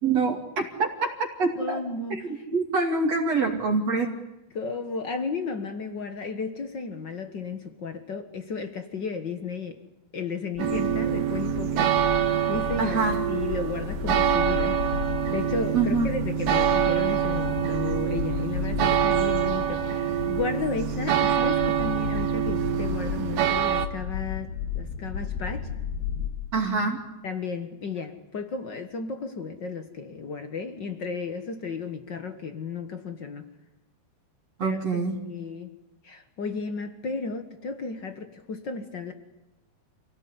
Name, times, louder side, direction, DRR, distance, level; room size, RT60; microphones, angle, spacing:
voice 1, 0.0-1.1 1.4-1.8 2.1-4.1 12.8-13.2 15.7-16.1 26.5-27.0 34.6-35.2, right 4 dB, 45° right, 2 dB, 3.5 m, -25 dB
voice 2, 1.5-2.4 4.5-9.8 10.1-11.9 12.5-14.8 15.3-25.7 27.2-33.5 34.6-35.7 36.0-39.1, left 4 dB, 60° left, 8 dB, 1.2 m, -34 dB
sound 1, 10.6-26.3, left 7 dB, 80° left, 4.6 m, -34 dB
sound 2, 10.6-23.9, right 10 dB, 65° right, 3.0 m, -25 dB
28.5 x 17.5 x 9.8 m, 0.96 s
omnidirectional pair, 4.5 m